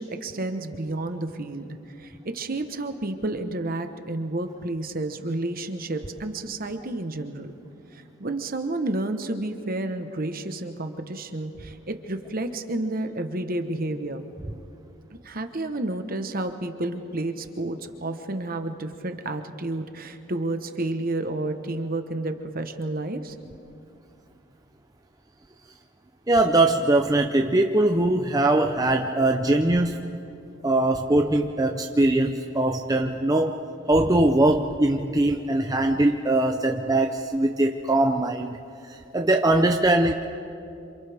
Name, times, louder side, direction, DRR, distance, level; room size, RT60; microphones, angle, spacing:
voice 1, 0.0-1.7 2.0-7.5 7.9-14.3 15.2-23.4, right 2 dB, 40° right, 7 dB, 1.1 m, -30 dB
voice 2, 26.3-30.2 30.6-33.6 33.9-38.6 38.8-40.1, right 2 dB, 15° right, 3 dB, 0.6 m, -21 dB
28.0 x 27.0 x 3.5 m, 2.7 s
head